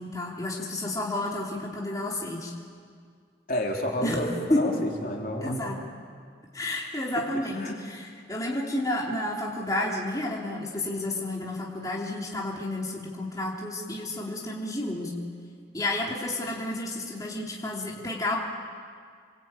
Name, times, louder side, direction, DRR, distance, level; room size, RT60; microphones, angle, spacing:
voice 1, 0.0-2.5 4.0-4.2 4.5-4.6 5.4-5.8 6.5-8.0 8.3-15.1 15.7-18.4, left 1 dB, 20° left, -3 dB, 3.5 m, -31 dB
voice 2, 3.5-5.6 7.5-7.7, equal, 50° left, -1 dB, 3.9 m, -30 dB
28.5 x 23.0 x 9.1 m, 2.1 s
head